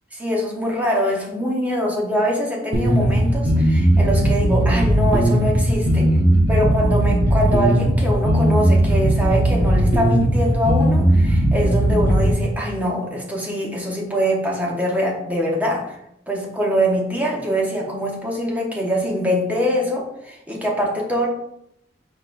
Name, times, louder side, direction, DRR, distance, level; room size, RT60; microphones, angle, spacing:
voice 1, 0.1-6.1 6.5-16.0 16.3-21.3, equal, 10° right, -2 dB, 0.9 m, -23 dB
sound 1, 2.7-12.3, right 1 dB, 65° right, 1.4 m, -17 dB
5.1 x 4.0 x 2.5 m, 0.80 s
head